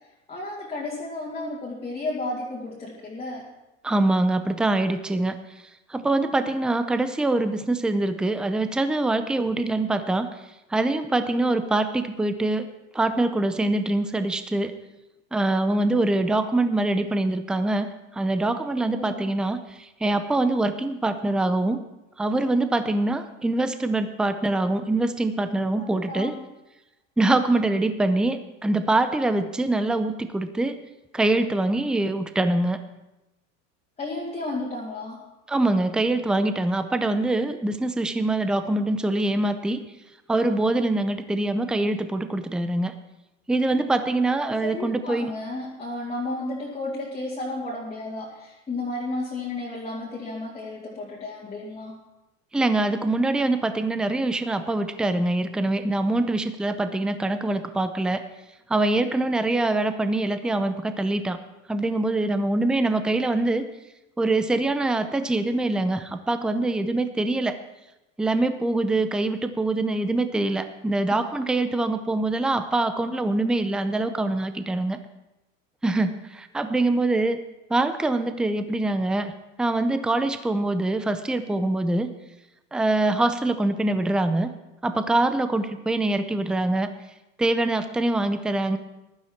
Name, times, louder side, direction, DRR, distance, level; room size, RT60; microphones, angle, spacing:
voice 1, 0.3-3.5 18.9-19.3 25.8-26.4 34.0-35.2 44.2-52.0 71.1-71.5, left 2 dB, 15° left, -6 dB, 2.4 m, -33 dB
voice 2, 3.8-5.4 5.9-10.3 10.7-12.6 12.9-14.7 15.3-17.9 18.1-21.8 22.2-26.3 27.2-30.8 31.1-32.8 35.5-39.8 40.3-42.9 43.5-45.3 52.5-58.2 58.7-61.4 61.7-63.6 64.2-67.6 68.2-75.0 75.8-77.4 77.7-79.3 79.6-82.1 82.7-84.5 84.8-86.9 87.4-88.8, right 2 dB, ahead, 10 dB, 0.5 m, -24 dB
15.0 x 11.5 x 4.5 m, 0.96 s
supercardioid pair, 135°, 38 cm